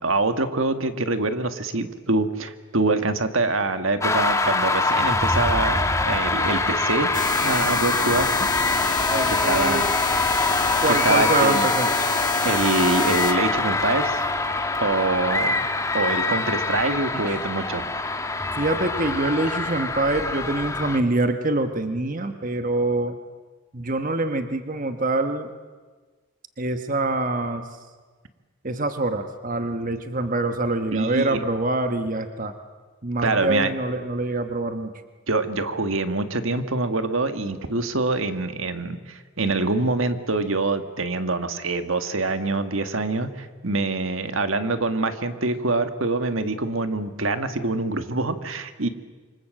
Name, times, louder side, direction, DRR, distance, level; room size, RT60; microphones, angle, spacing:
voice 1, 0.0-8.3 9.3-9.9 10.9-11.7 12.4-14.2 14.8-15.5 15.9-17.9 30.9-31.4 33.2-33.7 35.3-48.9, right 2 dB, 70° right, 9 dB, 1.7 m, -25 dB
sound 1, 4.0-21.0, left 2 dB, 15° left, 1.3 m, -24 dB
sound 2, 7.1-13.3, left 6 dB, 40° left, 2.1 m, -29 dB
voice 2, 9.1-9.8 10.8-11.9 18.5-23.1 23.7-25.5 26.6-27.6 28.6-32.5 33.0-34.9, right 2 dB, 40° right, 8 dB, 1.3 m, -25 dB
27.0 x 25.5 x 7.7 m, 1.4 s
head